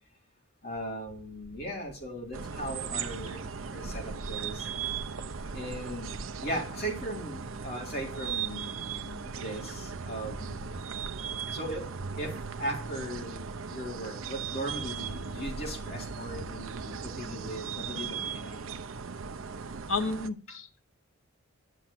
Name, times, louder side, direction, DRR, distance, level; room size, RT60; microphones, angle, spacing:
voice 1, 0.6-3.4 3.7-4.7 5.5-6.1 6.4-10.6 11.5-11.8 12.2-12.3 12.6-18.8, right 1 dB, 50° left, 4.3 m, -38 dB
sound 1, 2.3-20.3, right 6 dB, 90° right, 0.7 m, -38 dB
voice 2, 19.9-20.9, left 3 dB, 75° left, 1.2 m, -32 dB
10.5 x 7.5 x 7.6 m
head